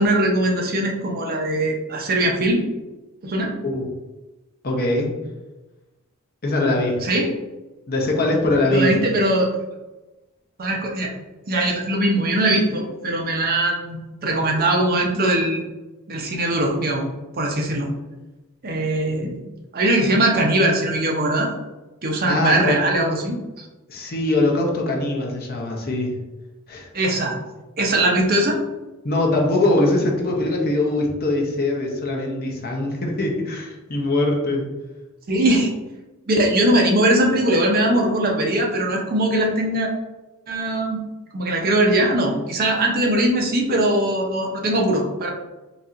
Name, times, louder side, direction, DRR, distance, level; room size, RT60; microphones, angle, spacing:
voice 1, 0.0-2.7 3.2-3.5 7.0-7.3 8.7-9.5 10.6-11.1 11.5-15.6 16.1-17.0 17.3-17.9 18.6-19.4 19.7-21.5 22.0-23.6 26.9-27.3 27.8-28.6 35.3-35.7 36.3-39.9 40.5-41.0 41.3-45.3, right 1 dB, 45° right, 1 dB, 0.6 m, -20 dB
voice 2, 4.6-5.1 6.4-7.0 7.9-8.9 22.3-22.7 23.9-26.1 26.7-26.9 29.0-34.7, left 2 dB, 45° left, 0 dB, 0.7 m, -22 dB
4.0 x 2.7 x 2.4 m, 1.1 s
head